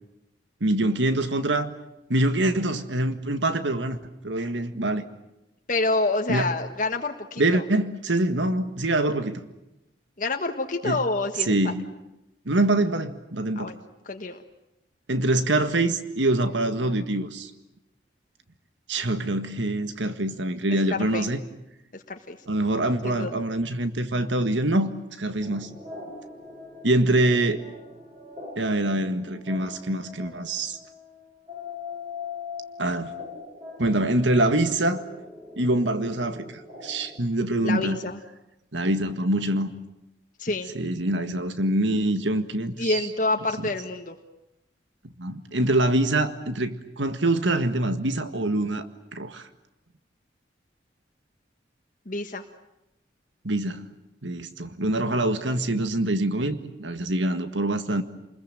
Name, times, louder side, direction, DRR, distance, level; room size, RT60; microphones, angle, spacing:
voice 1, 0.6-1.7 2.1-4.0 4.2-5.1 6.3-6.5 7.4-9.4 10.8-11.0 11.4-11.8 12.5-13.8 15.1-17.5 18.9-21.4 22.5-24.9 25.2-25.7 26.8-27.6 28.6-30.8 32.8-33.1 33.8-35.0 35.6-38.0 38.7-39.7 40.7-43.0 45.2-48.9 49.1-49.5 53.4-53.9 54.2-58.0, right 1 dB, 80° right, 9 dB, 1.8 m, -25 dB
voice 2, 5.7-7.6 10.2-11.7 13.5-13.8 14.0-14.4 20.7-21.3 21.9-22.4 23.0-23.4 37.6-38.2 40.4-40.7 42.8-44.2 52.0-52.4, left 2 dB, 45° left, 4 dB, 1.5 m, -28 dB
sound 1, 25.4-37.2, left 4 dB, 30° right, 6.5 m, -42 dB
29.0 x 21.5 x 9.0 m, 0.91 s
head